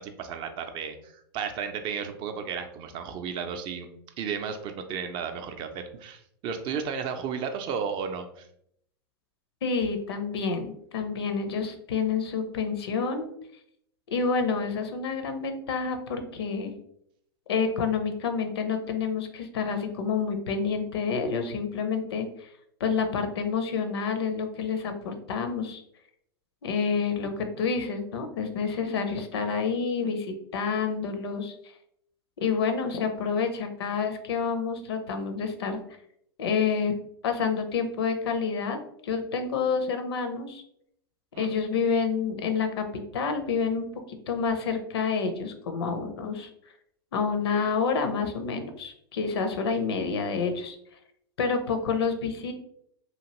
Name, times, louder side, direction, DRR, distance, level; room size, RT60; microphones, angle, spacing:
voice 1, 0.0-3.9 4.2-8.5 41.3-41.5, right 6 dB, 40° right, 7 dB, 0.4 m, -33 dB
voice 2, 9.6-13.3 14.1-16.7 17.5-22.5 22.8-25.8 26.6-31.6 32.4-35.8 36.4-37.0 37.2-40.6 41.4-42.9 43.1-43.9 44.3-46.5 47.1-50.8 51.4-52.5, left 5 dB, 75° left, 7 dB, 0.5 m, -28 dB
2.9 x 2.5 x 2.9 m, 0.72 s
hypercardioid pair, 105°, 13 cm